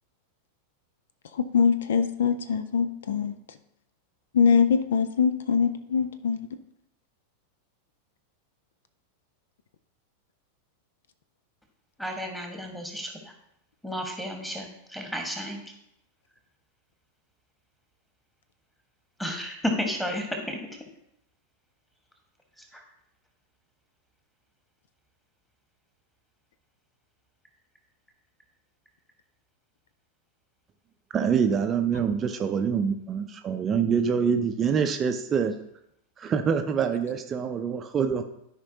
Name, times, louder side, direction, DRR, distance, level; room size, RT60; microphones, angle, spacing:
voice 1, 1.4-3.3 4.3-6.5, left 6 dB, 60° left, 11 dB, 0.4 m, -23 dB
voice 2, 12.0-13.3 13.8-15.6 19.2-20.6 22.6-22.8, equal, 5° left, 3 dB, 1.5 m, -32 dB
voice 3, 31.1-35.6 36.2-38.2, right 6 dB, 25° right, 7 dB, 0.5 m, -25 dB
13.0 x 5.1 x 2.8 m, 0.78 s
figure-of-eight pair, 90°, 0 cm